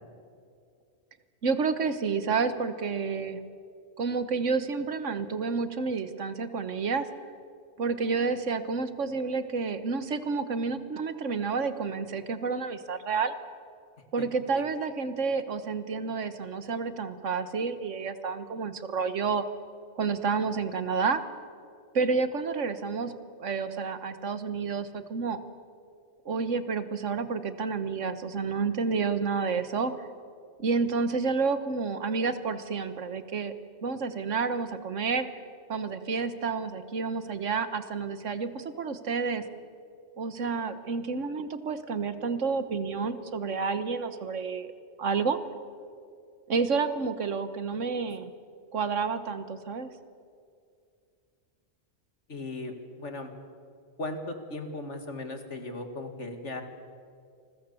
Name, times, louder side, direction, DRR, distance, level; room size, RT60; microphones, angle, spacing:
voice 1, 1.4-3.4 4.0-7.1 7.8-13.3 14.1-19.4 20.0-21.2 21.9-23.1 23.4-25.4 26.2-30.1 30.6-33.5 33.8-35.3 35.7-39.4 40.2-44.7 45.0-45.4 46.5-48.3 48.7-49.9, right 5 dB, 85° right, 11 dB, 1.6 m, -30 dB
voice 2, 52.3-53.3 54.0-56.6, left 2 dB, 75° left, 6 dB, 2.6 m, -37 dB
28.0 x 21.5 x 7.0 m, 2.3 s
omnidirectional pair, 1.2 m